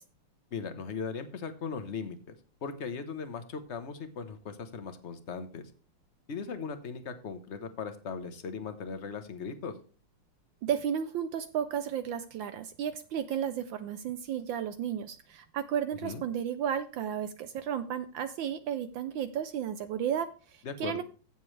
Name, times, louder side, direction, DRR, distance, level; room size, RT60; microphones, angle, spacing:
voice 1, 0.5-5.7 6.3-9.8 16.0-16.2 20.6-21.0, left 5 dB, 40° left, 9 dB, 1.1 m, -38 dB
voice 2, 10.6-21.0, right 9 dB, 70° right, 11 dB, 1.3 m, -33 dB
15.0 x 7.1 x 3.2 m, 0.36 s
omnidirectional pair, 2.4 m